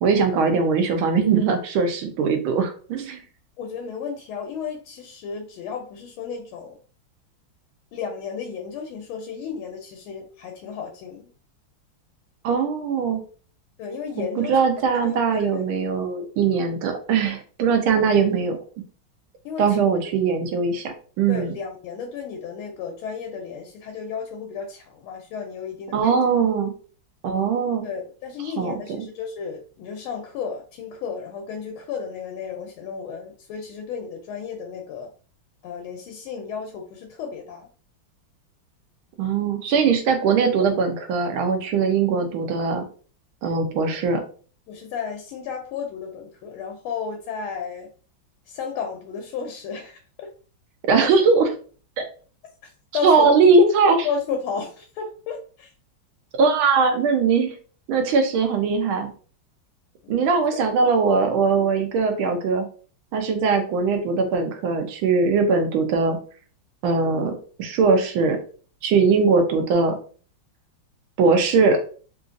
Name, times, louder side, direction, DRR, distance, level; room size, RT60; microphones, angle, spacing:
voice 1, 0.0-3.2 12.4-13.2 14.2-18.6 19.6-21.5 25.9-26.7 27.2-27.8 28.6-29.0 39.2-42.8 43.4-44.2 50.9-51.5 52.0-52.1 53.0-54.1 56.4-57.5 57.9-59.1 60.1-62.7 63.1-66.2 66.8-68.4 68.8-70.0 71.2-71.8, right 5 dB, 80° right, 5 dB, 1.5 m, -20 dB
voice 2, 3.6-6.7 7.9-11.3 13.8-14.5 15.0-15.6 19.4-19.8 21.3-26.1 27.8-35.1 35.6-37.7 44.7-47.9 48.5-50.3 52.6-53.3 54.0-55.7 60.0-60.3, left 6 dB, 90° left, 3 dB, 1.4 m, -33 dB
3.8 x 2.5 x 2.5 m, 0.40 s
omnidirectional pair, 2.3 m